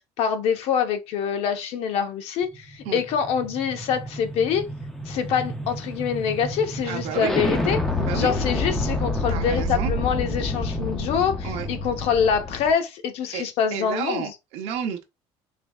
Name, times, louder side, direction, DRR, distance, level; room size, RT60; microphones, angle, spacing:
voice 1, 0.0-4.7 5.1-7.8 8.1-14.3, left 7 dB, 55° left, 0.7 m, -25 dB
sound 1, 2.5-12.7, left 1 dB, 5° left, 0.4 m, -29 dB
voice 2, 6.8-7.3 8.0-8.4 9.3-9.9 11.4-11.7 13.3-15.0, right 8 dB, 55° right, 0.6 m, -31 dB
3.3 x 3.2 x 2.3 m
cardioid pair, 175°, 13 cm